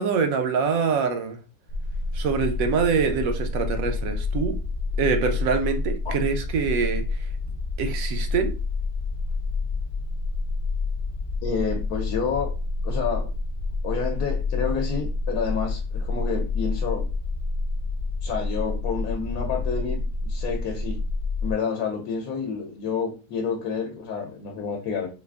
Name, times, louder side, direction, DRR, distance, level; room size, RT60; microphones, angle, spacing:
voice 1, 0.0-1.4 2.1-4.6 5.0-7.0 7.8-8.5, right 5 dB, 70° right, 1.0 m, -24 dB
sound 1, 1.7-21.5, left 3 dB, 65° left, 0.6 m, -28 dB
voice 2, 11.4-12.5 12.8-13.3 13.8-17.1 18.2-21.0 21.4-25.1, left 5 dB, 80° left, 1.2 m, -29 dB
4.4 x 2.4 x 2.3 m
omnidirectional pair, 1.6 m